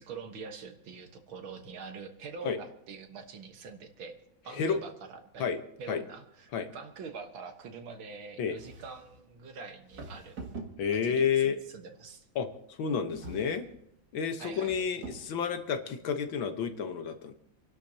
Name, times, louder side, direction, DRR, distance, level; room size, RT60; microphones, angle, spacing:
voice 1, 0.0-4.2 4.4-5.5 5.8-10.4 10.9-12.3 14.4-14.8, right 5 dB, 80° right, 6 dB, 2.2 m, -44 dB
sound 1, 8.6-9.2 9.9-11.2 13.1-13.8 14.5-15.4, right 3 dB, 50° right, 2.4 m, -45 dB
voice 2, 10.8-11.6 12.4-12.5 12.8-13.7 14.1-17.3, left 6 dB, 80° left, 7 dB, 1.9 m, -30 dB
29.0 x 11.5 x 2.8 m, 0.76 s
omnidirectional pair, 2.2 m